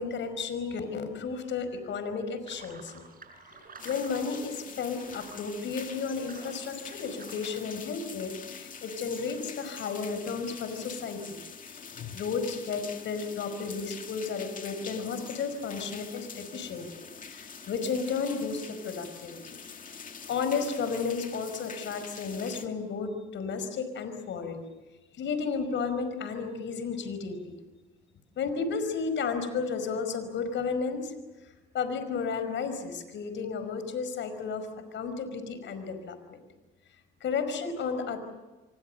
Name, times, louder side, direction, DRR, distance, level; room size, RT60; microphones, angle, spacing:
voice 1, 0.0-3.0 3.5-11.4 11.9-16.9 17.3-19.6 20.3-24.6 25.1-27.6 28.4-31.1 31.7-34.7 34.9-36.4 37.2-38.2, left 5 dB, 70° left, 10 dB, 5.2 m, -33 dB
sound 1, 2.5-7.6, right 4 dB, 45° right, 5.7 m, -51 dB
sound 2, 3.8-22.7, left 6 dB, 40° left, 2.4 m, -45 dB
27.5 x 24.0 x 6.8 m, 1.2 s
cardioid pair, 90°, 20 cm